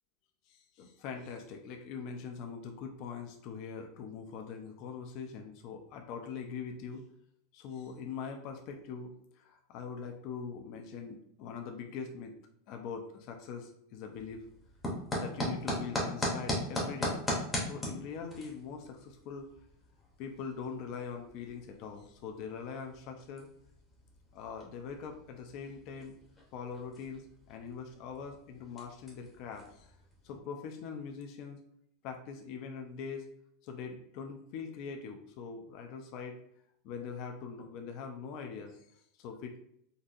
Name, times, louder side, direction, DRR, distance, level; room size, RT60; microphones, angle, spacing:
voice 1, 0.5-7.0 7.5-12.4 12.7-14.4 15.1-17.2 17.5-19.5 20.2-23.5 24.3-26.2 26.5-30.0 30.2-31.6 32.0-33.2 33.6-36.4 36.8-39.6, left 6 dB, 40° left, 3 dB, 0.4 m, -42 dB
sound 1, 14.1-30.4, left 1 dB, 10° left, 0.7 m, -40 dB
3.9 x 2.6 x 2.4 m, 0.71 s
supercardioid pair, 180°, 0 cm